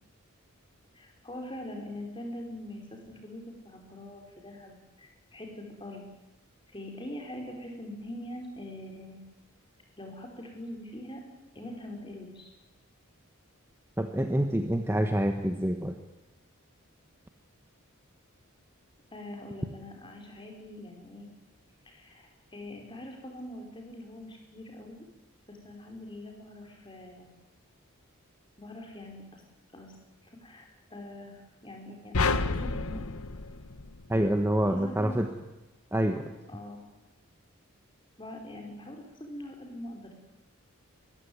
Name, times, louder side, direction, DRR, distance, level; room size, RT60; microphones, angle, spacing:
voice 1, 0.9-6.0 6.7-9.2 10.0-11.2 11.5-12.5 19.1-21.3 21.8-25.1 25.5-27.3 28.6-29.4 29.7-29.9 30.2-32.2 32.5-33.1 34.7-35.2 36.5-36.8 38.2-40.1, left 1 dB, 25° left, 2 dB, 4.9 m, -43 dB
voice 2, 14.0-15.9 34.1-35.3 35.9-36.2, equal, 10° right, 5 dB, 1.2 m, -26 dB
sound 1, 32.1-34.6, left 3 dB, 90° left, 1.3 m, -30 dB
23.0 x 15.0 x 9.6 m, 1.1 s
head